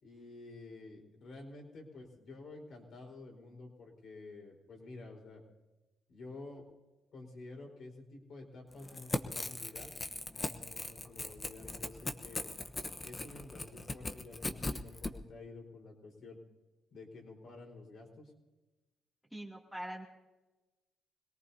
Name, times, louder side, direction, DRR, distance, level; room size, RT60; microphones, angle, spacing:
voice 1, 0.0-5.4 6.1-6.7 7.1-9.9 10.3-12.4 13.0-16.4 16.9-18.3, left 2 dB, 60° left, 1 dB, 4.4 m, -50 dB
Crackle / Tearing, 8.8-15.1, left 2 dB, 20° left, 1.1 m, -39 dB
voice 2, 19.3-20.0, right 1 dB, ahead, -2 dB, 2.6 m, -43 dB
25.5 x 18.5 x 2.8 m, 1.1 s
cardioid pair, 90°, 0 cm